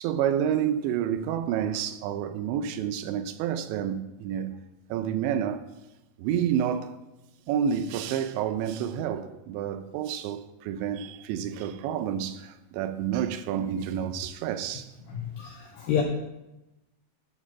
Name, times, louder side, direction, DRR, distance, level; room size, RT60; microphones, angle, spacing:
voice 1, 0.0-4.6 4.9-5.7 6.2-6.9 7.5-15.3, right 9 dB, 85° right, 3.0 m, -29 dB
voice 2, 15.1-16.0, left 8 dB, 85° left, 2.0 m, -29 dB
12.0 x 4.7 x 5.9 m
omnidirectional pair, 5.1 m